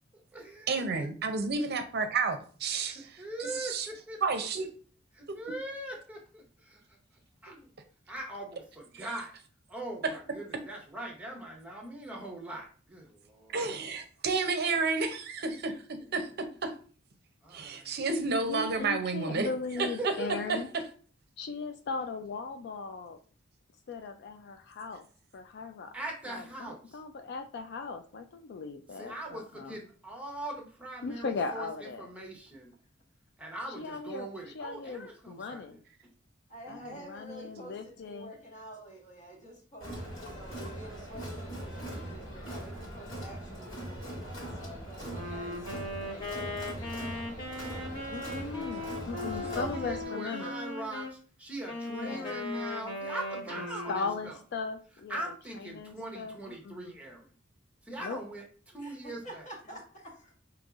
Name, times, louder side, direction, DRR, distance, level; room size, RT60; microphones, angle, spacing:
voice 1, 0.1-1.3 2.9-4.2 4.6-4.7 5.1-7.0 7.4-7.6 8.1-9.3 9.7-13.6 14.7-14.9 15.4-15.5 15.9-16.3 17.4-18.0 19.8-20.5 25.9-27.0 28.9-32.7 33.4-36.1 36.6-37.0 49.3-54.4 55.1-57.3 57.8-59.5, right 1 dB, 5° right, 0 dB, 0.9 m, -41 dB
voice 2, 0.7-3.1 3.4-3.9 4.2-4.7 9.0-9.1 13.5-16.7 17.5-19.5 19.8-19.9, right 4 dB, 55° right, 6 dB, 0.6 m, -31 dB
voice 3, 18.5-20.7 21.4-23.2 23.9-25.1 25.3-25.9 26.3-29.8 31.0-32.1 33.8-34.3 34.5-35.8 36.7-38.3 48.1-50.6 51.9-52.4 53.6-57.0 58.0-58.2, left 4 dB, 60° left, 6 dB, 0.4 m, -38 dB
voice 4, 36.5-49.1 58.8-60.3, right 1 dB, 40° left, -1 dB, 1.4 m, -49 dB
Crowd, 39.8-50.0, right 1 dB, 85° left, 1.8 m, -41 dB
Wind instrument woodwind instrument, 45.0-51.1 51.6-54.3, left 2 dB, 25° left, 1.1 m, -38 dB
5.3 x 2.9 x 2.4 m, 0.41 s
head